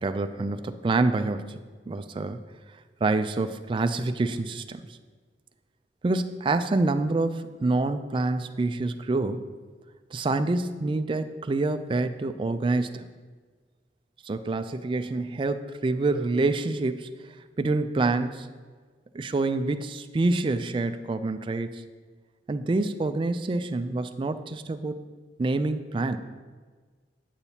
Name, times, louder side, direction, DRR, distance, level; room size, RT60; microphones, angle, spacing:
voice 1, 0.0-1.5 1.9-2.4 3.0-4.8 6.0-9.4 10.1-13.1 14.2-17.1 17.6-18.5 19.1-21.8 22.5-25.0 25.4-26.2, right 3 dB, 30° right, 9 dB, 0.3 m, -27 dB
8.5 x 8.0 x 2.8 m, 1.5 s
head